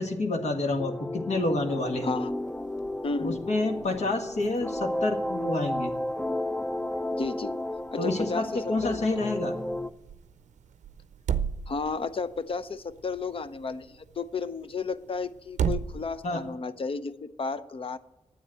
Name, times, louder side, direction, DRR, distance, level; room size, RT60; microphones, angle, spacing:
voice 1, 0.0-2.1 3.2-5.9 8.0-9.5 16.2-16.4, left 2 dB, 65° left, 4 dB, 1.7 m, -28 dB
sound 1, 0.8-9.9, left 1 dB, 10° left, 0.3 m, -33 dB
sound 2, 1.3-16.6, right 7 dB, 85° right, 0.5 m, -39 dB
voice 2, 3.0-3.4 7.2-7.5 7.9-8.5 8.8-9.1 11.7-18.0, left 4 dB, 50° left, 13 dB, 0.7 m, -32 dB
9.5 x 8.0 x 7.6 m, 0.99 s
cardioid pair, 75°, 12 cm